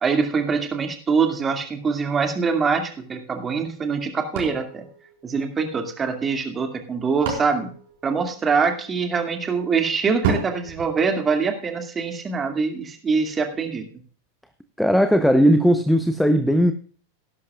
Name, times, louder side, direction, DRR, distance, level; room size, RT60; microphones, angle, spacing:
voice 1, 0.0-4.9 5.2-7.7 8.0-13.9, right 5 dB, 20° right, 2.3 m, -24 dB
sound 1, 4.3-5.9 6.7-8.7 10.2-11.8, right 6 dB, 55° right, 4.7 m, -32 dB
voice 2, 14.8-16.7, equal, ahead, 0.8 m, -17 dB
18.0 x 11.0 x 2.4 m
figure-of-eight pair, 90°, 0 cm